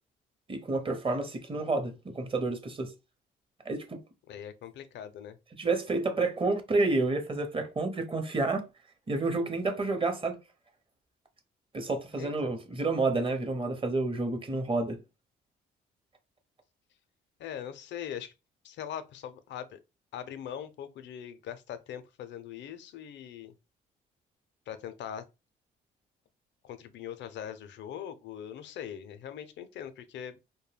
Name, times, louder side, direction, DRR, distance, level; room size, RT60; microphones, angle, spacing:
voice 1, 0.5-2.9 3.6-4.0 5.5-8.7 9.1-10.4 11.7-15.0, right 3 dB, 25° right, 0.7 m, -29 dB
voice 2, 4.3-5.4 12.2-12.5 17.4-18.3 18.6-19.8 20.1-23.5 24.7-25.2 26.6-30.4, left 9 dB, 65° left, 0.5 m, -41 dB
2.2 x 2.1 x 3.2 m
supercardioid pair, 60°, 20 cm